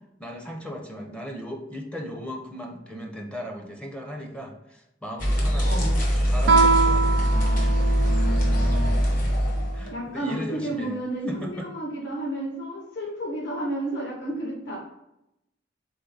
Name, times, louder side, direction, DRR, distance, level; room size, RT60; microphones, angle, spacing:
voice 1, 0.2-5.9 6.2-7.3 9.3-9.4 9.7-11.0 11.3-11.7, equal, 5° left, 2 dB, 0.5 m, -37 dB
sound 1, 5.2-9.9, equal, 45° left, 1.1 m, -22 dB
Guitar, 6.4-8.9, right 4 dB, 80° right, 0.5 m, -23 dB
voice 2, 7.2-9.0 9.9-14.8, right 1 dB, 70° left, -3 dB, 1.5 m, -32 dB
3.7 x 3.4 x 3.9 m, 0.83 s
head